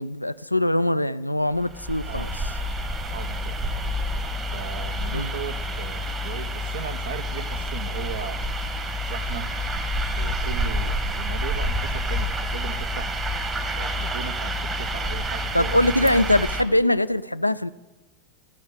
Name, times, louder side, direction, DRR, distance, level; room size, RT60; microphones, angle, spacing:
voice 1, 0.0-2.3 5.1-5.3 15.5-17.7, left 1 dB, 85° left, 0.4 m, -22 dB
sound 1, 1.5-16.6, equal, 20° right, 1.3 m, -28 dB
voice 2, 3.1-3.5 4.5-9.5 10.2-13.2 13.8-16.3, right 8 dB, 60° right, 0.9 m, -37 dB
14.0 x 6.4 x 9.1 m
figure-of-eight pair, 90°, 0 cm